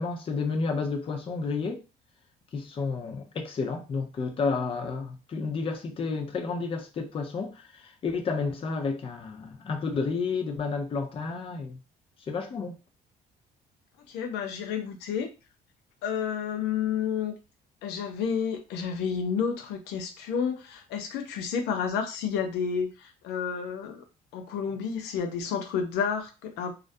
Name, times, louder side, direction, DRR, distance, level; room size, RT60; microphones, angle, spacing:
voice 1, 0.0-1.8 2.5-11.8 12.3-12.7, left 4 dB, 35° left, 0.5 m, -31 dB
voice 2, 14.1-15.3 16.0-17.3 17.8-24.0 24.3-26.7, left 7 dB, 85° left, 0.5 m, -30 dB
2.4 x 2.0 x 2.5 m
cardioid pair, 110°, 17 cm